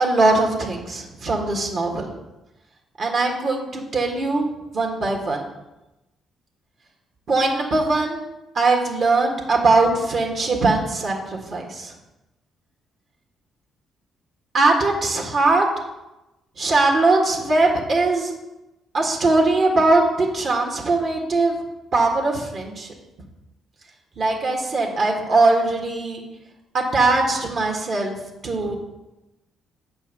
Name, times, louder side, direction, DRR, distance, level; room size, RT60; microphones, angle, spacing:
voice 1, 0.0-2.1 3.0-4.5 4.7-5.4 7.3-8.2 8.5-11.9 14.5-15.7 16.6-18.3 18.9-21.6 21.9-22.9 24.2-26.2 26.7-28.2 28.4-28.8, right 3 dB, 55° right, 0 dB, 1.7 m, -20 dB
7.9 x 4.5 x 6.9 m, 0.98 s
cardioid pair, 90°, 0 cm